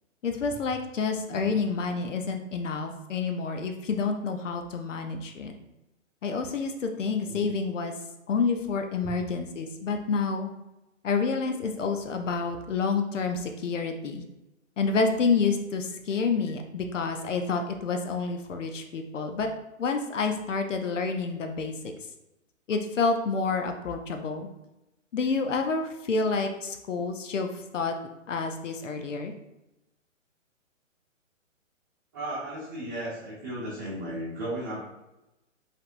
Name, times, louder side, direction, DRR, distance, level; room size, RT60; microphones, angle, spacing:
voice 1, 0.2-5.5 6.2-7.9 8.3-10.5 11.0-14.2 14.8-19.5 19.8-21.9 22.7-24.5 25.1-28.0 28.3-29.3, left 4 dB, 70° left, 5 dB, 0.8 m, -28 dB
voice 2, 7.2-7.5 32.1-34.8, right 1 dB, 15° right, -8 dB, 0.9 m, -35 dB
5.4 x 3.5 x 2.5 m, 0.94 s
hypercardioid pair, 175°, 39 cm